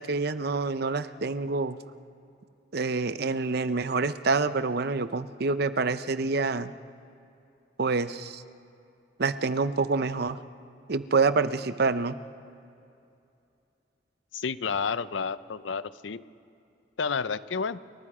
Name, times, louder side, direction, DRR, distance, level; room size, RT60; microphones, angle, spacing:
voice 1, 0.0-1.8 2.7-6.7 7.8-8.4 9.2-10.4 10.9-12.2, right 4 dB, 60° right, 12 dB, 0.7 m, -27 dB
voice 2, 14.3-16.2 17.0-17.8, left 5 dB, 90° left, 15 dB, 0.6 m, -30 dB
29.5 x 24.0 x 4.9 m, 2.6 s
head